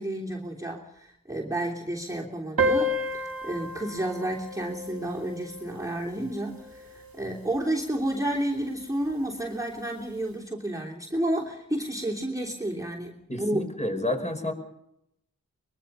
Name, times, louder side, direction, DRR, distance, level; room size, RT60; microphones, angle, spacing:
voice 1, 0.0-2.9 3.4-13.7, right 1 dB, 10° right, -2 dB, 3.0 m, -31 dB
sound 1, 2.6-7.6, equal, 85° right, 1.8 m, -31 dB
voice 2, 13.3-14.5, left 1 dB, 20° left, 4 dB, 5.5 m, -30 dB
23.5 x 22.0 x 5.5 m, 0.79 s
wide cardioid pair, 40°, 35 cm